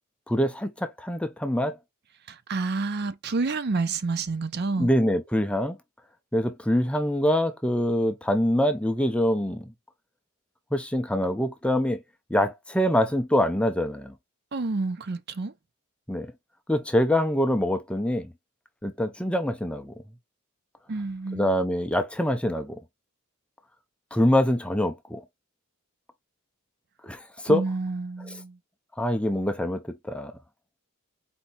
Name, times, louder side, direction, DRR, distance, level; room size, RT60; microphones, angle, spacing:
voice 1, 0.3-1.8 4.8-5.8 6.3-9.7 10.7-12.0 12.3-14.1 16.1-16.3 16.7-18.3 18.8-19.9 21.3-22.8 24.1-25.2 27.0-27.6 29.0-30.3, equal, 5° left, 0.5 m, -25 dB
voice 2, 2.3-4.9 14.5-15.5 20.9-21.6 27.5-28.6, right 3 dB, 45° right, 0.5 m, -29 dB
4.4 x 2.7 x 4.0 m
head